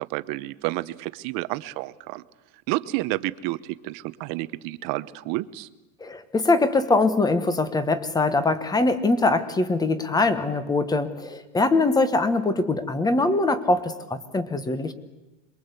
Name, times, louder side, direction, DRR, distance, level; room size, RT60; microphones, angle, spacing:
voice 1, 0.0-2.2 2.7-5.7, right 19 dB, 45° right, 13 dB, 1.0 m, -30 dB
voice 2, 6.0-14.9, left 3 dB, 10° left, 12 dB, 1.2 m, -22 dB
27.0 x 22.0 x 8.2 m, 1.1 s
supercardioid pair, 155°, 48 cm